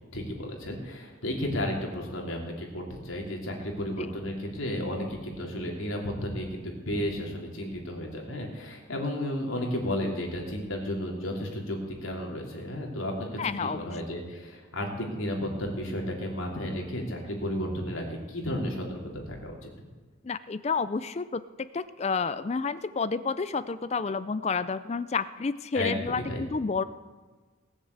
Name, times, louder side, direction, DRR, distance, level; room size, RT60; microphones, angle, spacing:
voice 1, 0.1-19.7 25.7-26.4, left 1 dB, 80° left, 0 dB, 3.2 m, -33 dB
voice 2, 13.4-14.0 20.2-21.4 21.7-26.8, left 4 dB, 30° left, 14 dB, 0.4 m, -30 dB
19.0 x 7.3 x 8.0 m, 1.4 s
head